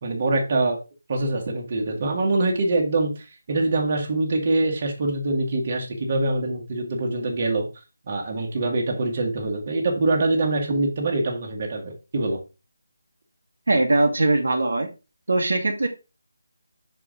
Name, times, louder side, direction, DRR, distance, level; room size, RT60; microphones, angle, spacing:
voice 1, 0.0-0.8 1.1-7.7 8.1-12.4, right 2 dB, 35° right, 0 dB, 1.7 m, -24 dB
voice 2, 13.7-14.9 15.3-15.9, right 2 dB, 75° right, 3 dB, 1.5 m, -21 dB
6.0 x 4.9 x 3.7 m, 0.29 s
figure-of-eight pair, 165°, 0 cm